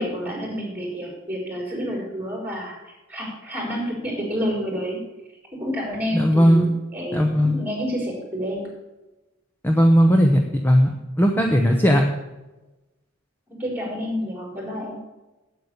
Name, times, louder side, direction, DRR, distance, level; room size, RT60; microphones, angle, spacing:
voice 1, 0.0-2.8 3.1-5.0 5.5-7.2 7.4-8.7 13.5-15.0, equal, 10° right, -1 dB, 4.1 m, -29 dB
voice 2, 6.1-6.7 7.1-7.6 9.6-10.9 11.2-12.0, equal, 10° left, 3 dB, 0.8 m, -17 dB
8.6 x 8.5 x 6.7 m, 1.1 s
head